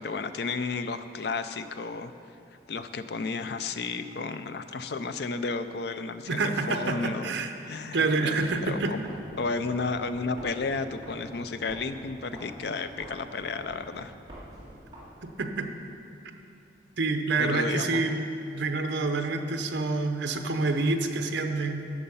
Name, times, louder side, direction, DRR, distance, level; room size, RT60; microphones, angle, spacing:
voice 1, 0.0-2.1 2.7-9.0 9.4-14.1 17.4-18.0, left 4 dB, 60° left, 10 dB, 0.4 m, -33 dB
voice 2, 6.3-7.5 7.9-8.9 15.2-15.7 17.0-21.8, right 3 dB, 70° right, 6 dB, 0.7 m, -27 dB
sound 1, 8.3-15.7, equal, 20° right, 2.2 m, -47 dB
11.0 x 6.7 x 5.5 m, 2.6 s
head